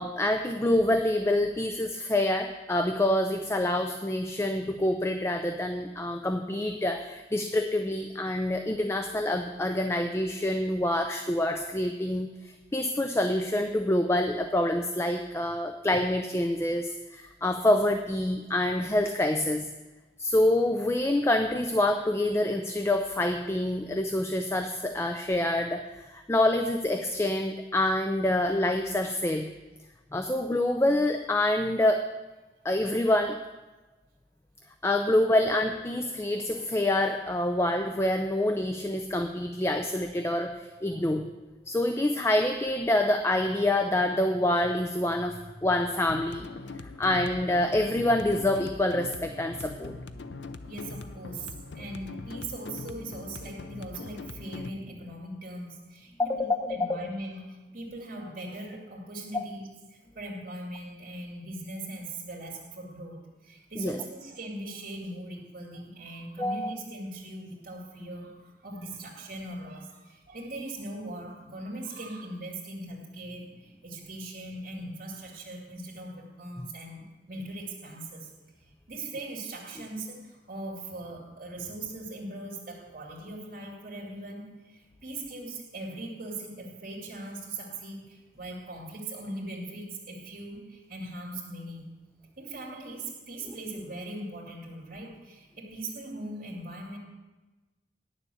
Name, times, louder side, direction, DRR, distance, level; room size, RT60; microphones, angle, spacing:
voice 1, 0.0-19.7 20.2-29.5 30.1-32.1 32.6-33.4 34.8-41.3 41.7-46.5 47.0-49.9 56.2-57.0 59.3-59.4 63.8-64.0 66.4-66.8, left 1 dB, 15° left, 6 dB, 0.4 m, -26 dB
sound 1, 46.1-54.7, left 3 dB, 75° left, 0.6 m, -41 dB
voice 2, 50.7-78.3 78.6-91.9 92.4-97.0, right 1 dB, 50° right, -3 dB, 2.5 m, -40 dB
10.0 x 7.1 x 6.9 m, 1.2 s
head